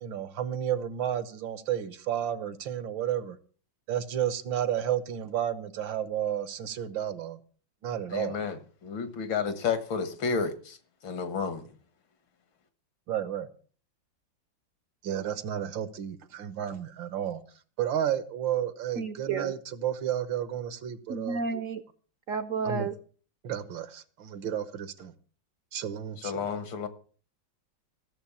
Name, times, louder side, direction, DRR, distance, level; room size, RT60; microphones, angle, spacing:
voice 1, 0.0-3.4 3.9-7.4 7.8-8.4 13.1-13.5 15.0-17.4 17.8-21.4 22.6-22.9 23.4-25.1 25.7-26.5, right 10 dB, 75° right, 1.8 m, -32 dB
voice 2, 8.1-10.8 11.0-11.7 26.2-26.9, left 5 dB, 85° left, 2.3 m, -31 dB
voice 3, 19.0-19.5 21.1-21.8 22.3-22.9, right 5 dB, 60° right, 0.8 m, -31 dB
15.0 x 7.3 x 7.1 m
omnidirectional pair, 2.1 m